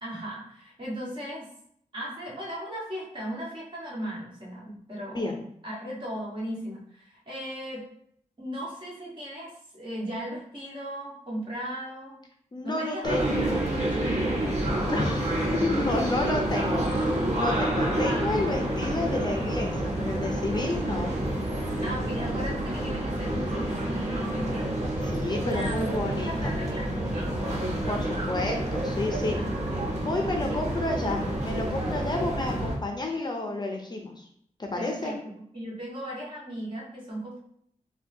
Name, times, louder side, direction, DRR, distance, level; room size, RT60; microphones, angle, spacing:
voice 1, 0.0-1.5 1.9-7.8 8.4-12.2 12.6-15.1 15.8-15.9 18.0-18.3 21.8-24.8 25.4-27.5 29.3-30.4 34.7-37.4, equal, 40° right, -5 dB, 1.4 m, -37 dB
voice 2, 12.5-13.7 14.9-15.3 15.6-21.1 25.0-26.5 27.9-29.4 30.0-34.3 34.6-35.2, left 2 dB, 35° left, 2 dB, 0.5 m, -31 dB
sound 1, 13.0-32.8, right 1 dB, 60° right, 0.9 m, -28 dB
4.4 x 2.2 x 2.7 m, 0.67 s
wide cardioid pair, 95°, 13 cm